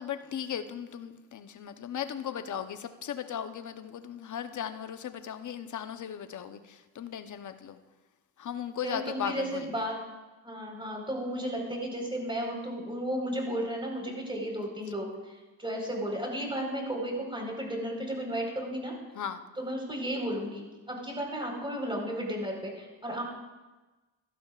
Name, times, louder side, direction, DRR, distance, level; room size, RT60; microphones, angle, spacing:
voice 1, 0.0-7.8 8.4-9.9 19.1-19.4, left 9 dB, 45° left, 9 dB, 0.9 m, -37 dB
voice 2, 8.8-10.0 10.4-15.3 15.6-18.9 19.6-23.2, equal, 10° right, 0 dB, 4.5 m, -34 dB
16.5 x 12.0 x 2.5 m, 1.2 s
supercardioid pair, 70°, 41 cm